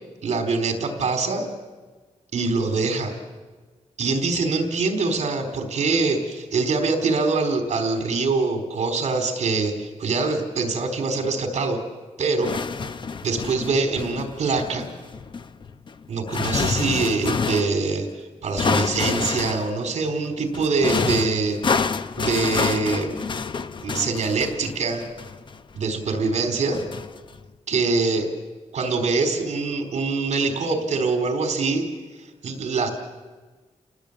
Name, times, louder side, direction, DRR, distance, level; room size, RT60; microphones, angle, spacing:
voice 1, 0.2-1.5 2.3-3.2 4.0-11.8 12.2-12.5 13.2-14.8 16.1-21.9 22.2-23.2 23.8-25.1 25.7-26.8 27.7-28.3 28.7-31.8 32.4-32.9, right 4 dB, 65° right, 5 dB, 4.1 m, -24 dB
sound 1, 12.4-17.8 18.6-19.8 20.5-25.8 26.7-27.4, left 5 dB, 40° left, 0.8 m, -27 dB
29.5 x 19.5 x 8.7 m, 1.3 s
wide cardioid pair, 175°, 13 cm